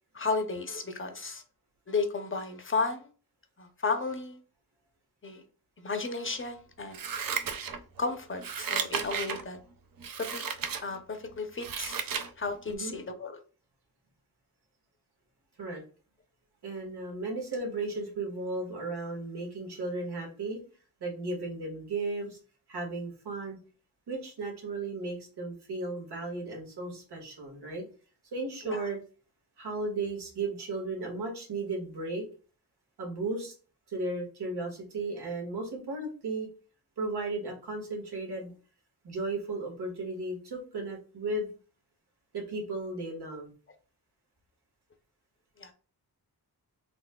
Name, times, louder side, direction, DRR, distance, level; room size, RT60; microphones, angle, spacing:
voice 1, 0.1-1.4 1.9-3.1 3.6-4.4 5.2-5.4 5.8-7.1 8.0-9.6 10.2-10.5 10.8-12.1 12.4-13.4 28.6-28.9 45.6-45.7, left 4 dB, 35° left, 6 dB, 0.7 m, -33 dB
Scissors, 6.9-8.0 8.4-9.4 10.0-10.8 11.3-12.3 12.7-12.8, right 7 dB, 65° right, 0.5 m, -34 dB
voice 2, 16.6-20.6 21.0-22.4 22.7-23.6 24.1-27.8 28.3-29.0 29.6-32.2 33.0-33.5 33.9-36.5 37.0-38.5 39.0-41.5 42.3-43.5, right 2 dB, 90° right, 0 dB, 1.7 m, -35 dB
4.2 x 3.2 x 2.2 m, 0.37 s
wide cardioid pair, 105°, 38 cm